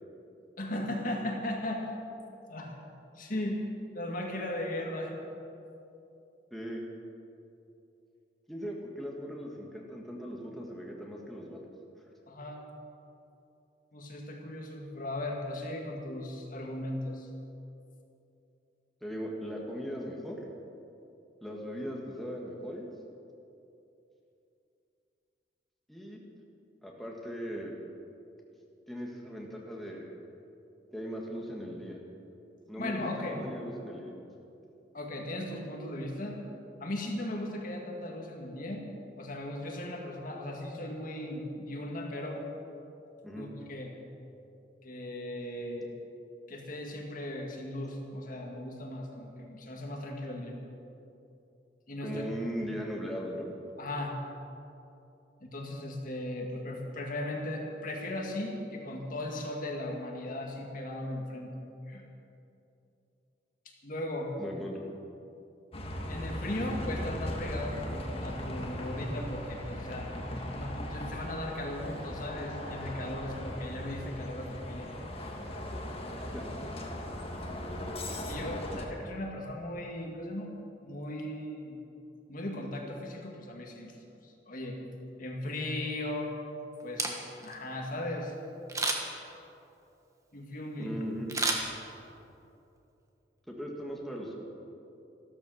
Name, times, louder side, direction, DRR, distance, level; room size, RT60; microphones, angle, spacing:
voice 1, 0.6-1.9 2.5-2.8 3.2-3.6 3.9-5.2 12.3-12.6 13.9-17.3 32.8-33.4 34.9-36.4 36.8-38.8 39.2-42.4 43.3-43.9 44.8-45.9 46.5-50.6 51.9-52.2 53.8-54.2 55.4-61.5 61.9-62.1 63.7-64.3 66.1-70.1 70.5-74.9 78.3-80.5 80.8-81.8 82.3-84.0 84.2-84.8 85.2-86.3 86.8-87.2 87.4-88.3 90.3-90.9, left 1 dB, 50° left, 1 dB, 1.9 m, -37 dB
voice 2, 6.5-6.8 8.5-11.6 19.0-20.4 21.4-22.9 25.9-26.2 26.8-27.7 28.9-30.2 30.9-32.0 32.7-34.1 43.2-43.5 52.0-53.5 64.4-64.8 76.3-76.4 90.8-91.3 93.5-94.3, equal, ahead, -2 dB, 1.7 m, -38 dB
Bus, 65.7-78.8, left 1 dB, 35° left, 1.7 m, -38 dB
Camera, 86.8-87.6 88.7-89.3 91.3-92.2 92.7-92.8, right 2 dB, 20° right, 1.5 m, -31 dB
14.0 x 13.0 x 6.4 m, 2.8 s
head